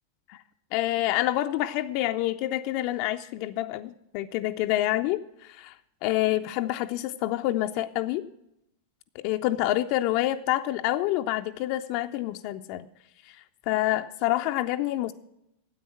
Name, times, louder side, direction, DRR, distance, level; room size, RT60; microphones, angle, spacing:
voice 1, 0.7-5.7 6.0-8.3 9.1-12.9 13.3-15.1, left 15 dB, 45° left, 7 dB, 0.4 m, -27 dB
9.7 x 8.3 x 7.4 m, 0.84 s
figure-of-eight pair, 90°, 0 cm